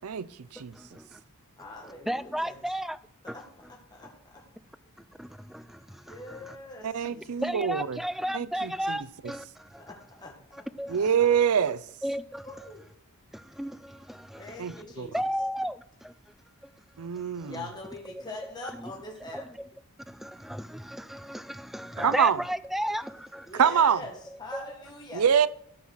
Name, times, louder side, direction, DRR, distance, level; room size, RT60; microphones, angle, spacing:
voice 1, 0.6-1.2 2.1-3.0 3.3-3.4 5.2-6.6 7.4-9.8 10.5-11.0 12.0-12.5 13.3-14.8 15.1-16.1 17.4-17.5 18.1-18.2 18.8-18.9 19.3-19.7 20.1-23.5 24.5-24.6, equal, ahead, 0.3 m, -34 dB
voice 2, 1.6-2.6 3.2-4.4 6.1-7.4 9.8-11.3 12.4-12.8 14.4-15.2 17.5-19.5 23.5-25.2, left 2 dB, 20° left, 1.7 m, -43 dB
voice 3, 6.8-8.0 8.3-9.0 10.9-11.8 14.6-14.7 15.0-15.1 17.0-17.5 22.0-22.4 23.6-24.0 25.1-25.5, right 7 dB, 80° right, 0.5 m, -24 dB
13.0 x 5.7 x 6.3 m
head